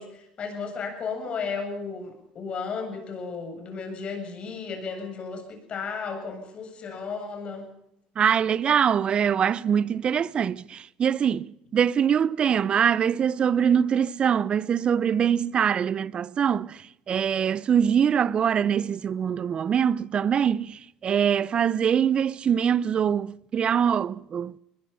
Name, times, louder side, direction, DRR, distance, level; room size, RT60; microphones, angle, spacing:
voice 1, 0.0-7.7, left 5 dB, 45° left, 8.0 m, -34 dB
voice 2, 8.2-24.6, right 8 dB, 40° right, 0.7 m, -23 dB
22.0 x 21.5 x 5.7 m
hypercardioid pair, 75°, 3 cm